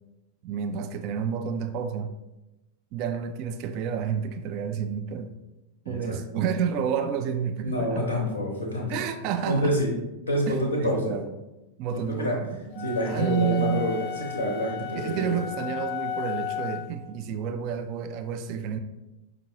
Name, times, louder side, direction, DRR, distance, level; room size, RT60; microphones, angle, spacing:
voice 1, 0.4-2.1 2.9-5.3 5.9-8.1 8.9-9.7 10.5-11.3 11.8-13.9 15.0-18.8, right 7 dB, 40° right, 8 dB, 0.3 m, -30 dB
voice 2, 5.9-6.2 7.6-8.9 9.5-9.9 10.3-11.2 12.1-12.3 12.8-14.0 14.3-15.2, equal, 80° left, -1 dB, 0.7 m, -27 dB
sound 1, 12.7-17.0, left 11 dB, 45° left, 0.4 m, -34 dB
5.1 x 2.6 x 2.8 m, 0.98 s
figure-of-eight pair, 90°, 0 cm